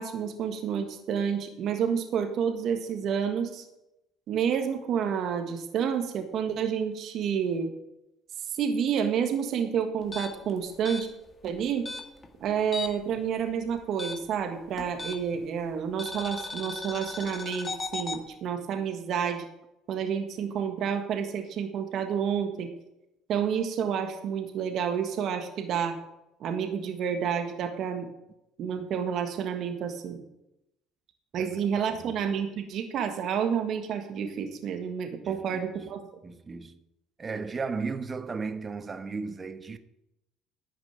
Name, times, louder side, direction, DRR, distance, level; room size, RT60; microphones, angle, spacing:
voice 1, 0.0-3.6 4.3-7.7 8.5-11.1 11.4-11.9 12.4-19.5 19.9-22.7 23.3-26.0 26.4-28.1 28.6-30.2 31.3-36.0, right 7 dB, 60° right, 1.6 m, -29 dB
sound 1, 10.0-13.1 13.4-15.5 16.0-18.2, left 3 dB, 30° left, 2.0 m, -37 dB
voice 2, 35.2-35.6 36.2-36.8 37.2-39.8, right 4 dB, 30° right, 1.2 m, -35 dB
11.5 x 6.0 x 8.9 m
supercardioid pair, 70°, 0 cm